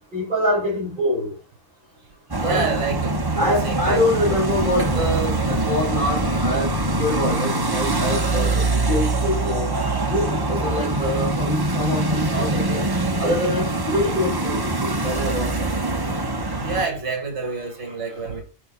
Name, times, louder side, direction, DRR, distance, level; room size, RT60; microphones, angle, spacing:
voice 1, 0.1-1.3 2.4-2.6 3.3-9.7 10.1-12.8 13.2-15.7 18.1-18.2, left 1 dB, 35° right, 5.7 m, -25 dB
sound 1, 2.3-16.9, right 2 dB, 20° right, 1.0 m, -23 dB
voice 2, 2.4-4.0 16.5-18.4, right 4 dB, 55° right, 2.5 m, -28 dB
11.5 x 4.4 x 3.8 m
omnidirectional pair, 1.4 m